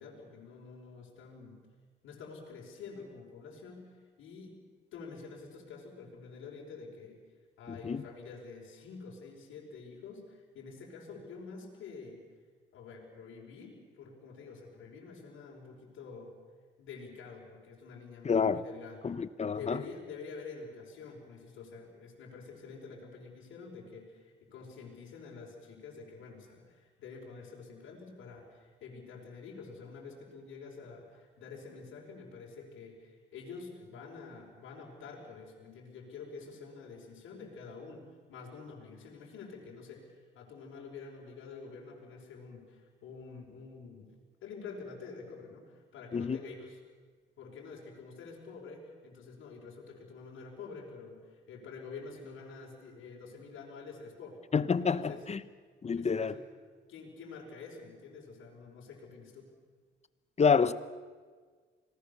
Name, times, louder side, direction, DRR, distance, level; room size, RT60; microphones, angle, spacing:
voice 1, 0.0-1.6 2.0-4.6 4.9-7.2 7.6-12.2 12.7-16.3 16.8-44.1 44.4-46.8 47.4-54.4 54.9-55.2 55.9-56.4 56.9-59.5, left 4 dB, 80° left, -2 dB, 5.2 m, -48 dB
voice 2, 7.7-8.0 18.2-18.6 19.0-19.8 46.1-46.4 54.5-55.4 55.8-56.3 60.4-60.7, left 5 dB, 35° left, 15 dB, 1.0 m, -28 dB
26.5 x 19.5 x 7.0 m, 1.5 s
cardioid pair, 90°, 20 cm